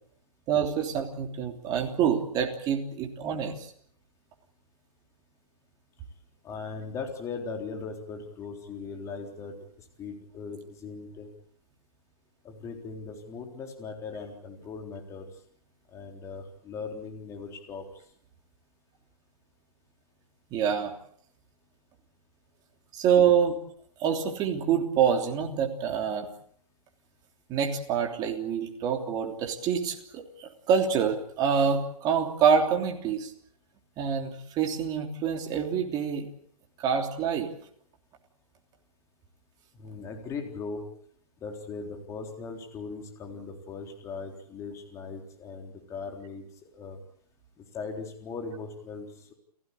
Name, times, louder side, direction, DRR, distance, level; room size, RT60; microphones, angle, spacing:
voice 1, 0.5-3.7 20.5-20.9 22.9-23.6 24.0-26.3 27.5-33.3 34.0-36.3 36.8-37.5, right 7 dB, 20° right, 3 dB, 3.2 m, -26 dB
voice 2, 6.4-9.5 10.0-11.3 12.4-15.3 15.9-17.9 39.7-40.8 41.4-46.5 46.7-47.0 47.6-49.3, left 4 dB, 15° left, 3 dB, 3.8 m, -39 dB
29.5 x 16.0 x 8.3 m, 0.64 s
hypercardioid pair, 150°, 20 cm